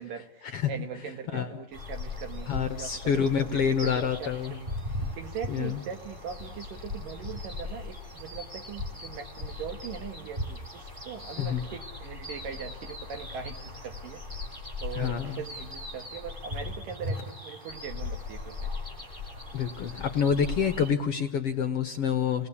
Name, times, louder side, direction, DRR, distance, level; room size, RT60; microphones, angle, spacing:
voice 1, 0.0-4.7 5.1-14.2 14.8-18.7, right 7 dB, 75° right, 7 dB, 3.4 m, -41 dB
sound 1, 1.7-20.9, left 2 dB, 15° right, 3.4 m, -38 dB
voice 2, 2.5-4.6 5.5-5.8 11.4-11.6 15.0-15.4 19.5-22.5, left 7 dB, 60° left, 7 dB, 1.7 m, -27 dB
30.0 x 19.5 x 8.5 m, 0.81 s
omnidirectional pair, 3.9 m